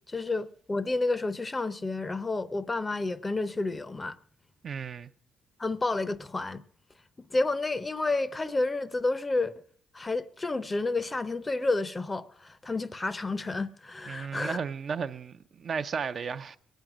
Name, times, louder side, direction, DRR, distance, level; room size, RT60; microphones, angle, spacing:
voice 1, 0.1-4.2 5.6-6.6 7.2-9.6 9.9-14.6, left 2 dB, 20° left, 0.6 m, -30 dB
voice 2, 4.6-5.1 14.1-16.6, right 6 dB, 50° right, 0.5 m, -34 dB
21.5 x 9.1 x 6.1 m
cardioid pair, 90°, 0 cm